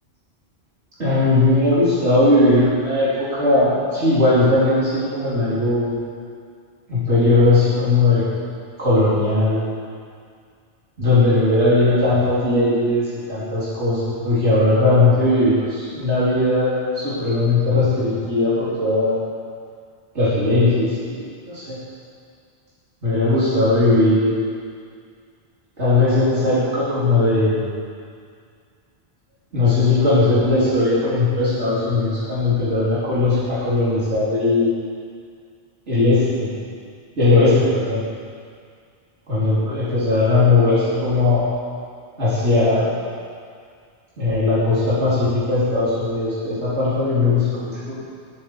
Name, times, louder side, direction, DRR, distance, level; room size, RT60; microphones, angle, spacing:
voice 1, 1.0-5.9 6.9-8.2 8.8-9.6 11.0-19.2 20.1-21.8 23.0-24.4 25.8-27.7 29.5-34.7 35.9-36.5 37.2-38.0 39.3-41.4 42.2-42.9 44.2-48.0, left 2 dB, 85° right, -12 dB, 3.9 m, -18 dB
19.0 x 9.2 x 4.7 m, 2.2 s
omnidirectional pair, 1.1 m